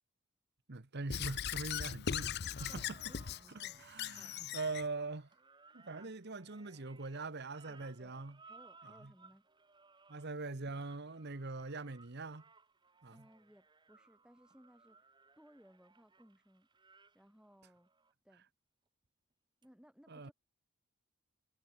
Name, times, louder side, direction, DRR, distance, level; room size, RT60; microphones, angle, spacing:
voice 1, 0.7-2.8 3.8-5.3 5.7-8.4 9.0-9.1 10.1-12.4 13.0-13.2 20.1-20.3, right 3 dB, 50° right, 1.2 m, -42 dB
Squeak / Writing, 1.1-4.9, left 8 dB, 50° left, 0.6 m, -39 dB
sound 1, 2.6-18.1 19.6-19.7, right 4 dB, 20° right, 1.3 m, -63 dB
voice 2, 2.7-3.9 4.2-4.4 7.7-9.5 10.5-10.6 13.1-16.7 17.1-17.9 18.2-18.5 19.6-20.3, equal, 5° right, 7.4 m, -63 dB
head